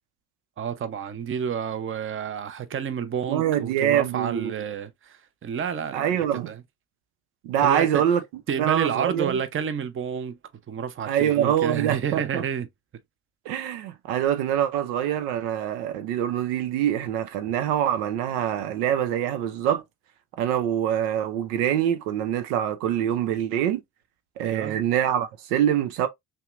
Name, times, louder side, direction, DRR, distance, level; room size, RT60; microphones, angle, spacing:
voice 1, 0.6-6.6 7.6-8.0 8.5-10.4 10.7-12.7 24.4-24.8, right 7 dB, 25° right, 0.6 m, -30 dB
voice 2, 3.3-4.5 5.9-6.5 7.4-8.2 8.6-9.3 11.1-12.4 13.5-19.8 20.4-23.8 24.4-26.1, right 10 dB, 80° right, 0.8 m, -24 dB
5.5 x 2.3 x 2.4 m
hypercardioid pair, 60°, 48 cm